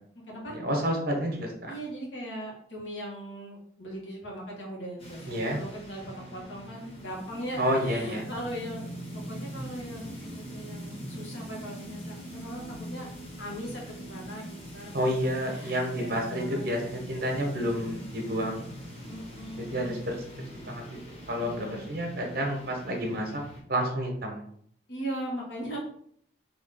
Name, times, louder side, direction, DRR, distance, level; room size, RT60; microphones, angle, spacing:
voice 1, 0.5-1.7 5.3-5.6 7.6-8.3 14.9-18.7 19.6-20.2 20.6-23.3 23.7-24.4, equal, 50° right, 2 dB, 1.0 m, -30 dB
voice 2, 1.7-8.8 9.1-13.1 13.4-15.1 15.5-18.0 19.0-20.0 21.4-21.8 24.9-25.8, equal, 75° left, -2 dB, 1.5 m, -39 dB
sound 1, 5.0-23.6, equal, 30° left, 1.3 m, -42 dB
4.0 x 2.9 x 4.1 m, 0.64 s
head